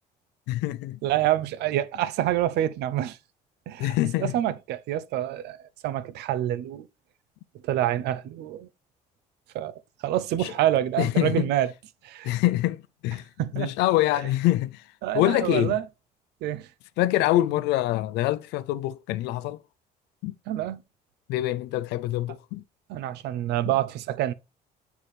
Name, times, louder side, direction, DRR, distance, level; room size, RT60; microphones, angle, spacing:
voice 1, 0.5-1.0 3.8-4.3 10.4-10.5 11.0-11.5 12.2-13.3 13.5-14.8 15.1-15.8 17.0-19.6 20.2-20.3 21.3-22.6, left 15 dB, 90° left, 0.5 m, -25 dB
voice 2, 1.0-3.2 3.7-6.9 7.6-8.7 9.5-11.7 12.0-12.3 13.4-13.7 14.1-14.2 15.0-15.8 16.4-16.7 20.5-20.8 22.9-24.3, right 13 dB, 80° right, 0.6 m, -27 dB
6.8 x 4.6 x 4.2 m
cardioid pair, 110°, 17 cm